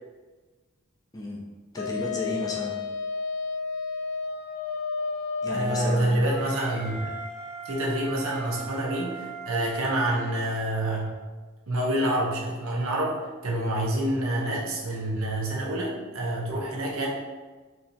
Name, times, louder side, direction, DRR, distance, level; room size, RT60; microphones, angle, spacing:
voice 1, 1.7-2.8 5.4-6.2, left 1 dB, 15° left, -1 dB, 0.5 m, -32 dB
Wind instrument woodwind instrument, 1.8-6.2, left 5 dB, 85° left, 0.3 m, -32 dB
voice 2, 5.5-7.1 7.6-11.1 11.7-13.2 13.4-17.1, right 1 dB, 70° right, -3 dB, 1.0 m, -27 dB
Wind instrument woodwind instrument 2, 6.3-11.1, right 3 dB, 70° left, 0.9 m, -39 dB
4.5 x 3.3 x 2.8 m, 1.3 s
head